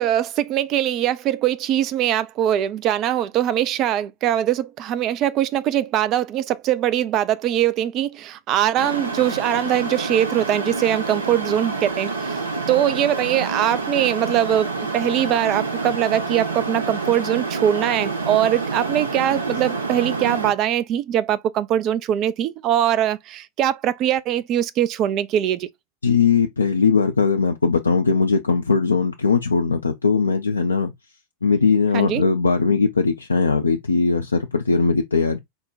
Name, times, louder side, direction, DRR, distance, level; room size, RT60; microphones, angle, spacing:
voice 1, 0.0-12.4 12.7-25.7 31.9-32.2, right 11 dB, 35° right, 0.4 m, -22 dB
sound 1, 8.8-20.5, right 3 dB, 70° right, 0.8 m, -28 dB
voice 2, 26.0-30.9 31.4-35.4, left 4 dB, 75° left, 0.5 m, -19 dB
4.5 x 2.2 x 3.9 m
figure-of-eight pair, 90°, 0 cm